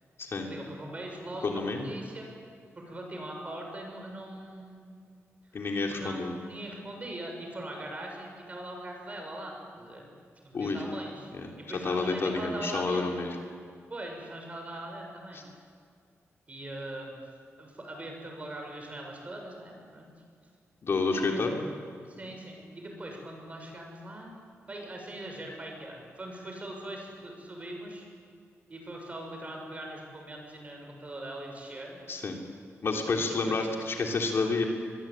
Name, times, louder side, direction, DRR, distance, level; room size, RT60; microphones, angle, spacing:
voice 1, 0.5-1.5 1.7-2.3 2.7-4.9 5.9-10.1 10.4-11.3 11.6-13.1 13.9-15.4 16.5-17.1 17.6-20.1 21.1-21.5 22.1-24.3 24.7-28.0 28.7-32.0 33.3-33.7, right 1 dB, 30° right, 1 dB, 6.7 m, -41 dB
voice 2, 1.4-1.9 5.5-6.4 10.5-10.8 11.3-11.4 11.8-13.3 20.8-21.6 32.1-32.4 32.8-34.6, left 3 dB, 55° left, 1 dB, 3.3 m, -29 dB
23.5 x 23.5 x 9.0 m, 2.1 s
wide cardioid pair, 145°, 5 cm